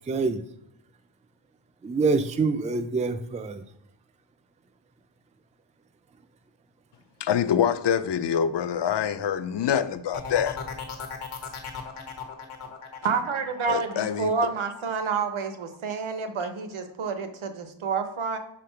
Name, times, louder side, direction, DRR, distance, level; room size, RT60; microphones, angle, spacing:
voice 1, 0.1-0.4 1.8-3.6, right 4 dB, 15° right, 0.3 m, -25 dB
voice 2, 7.2-10.6 13.7-14.5, left 8 dB, 60° left, 0.5 m, -25 dB
sound 1, 10.1-15.8 16.1-16.6, left 6 dB, 80° left, 1.3 m, -38 dB
voice 3, 13.0-18.4, right 5 dB, 75° right, 1.0 m, -29 dB
5.1 x 3.9 x 5.7 m
wide cardioid pair, 180°, 49 cm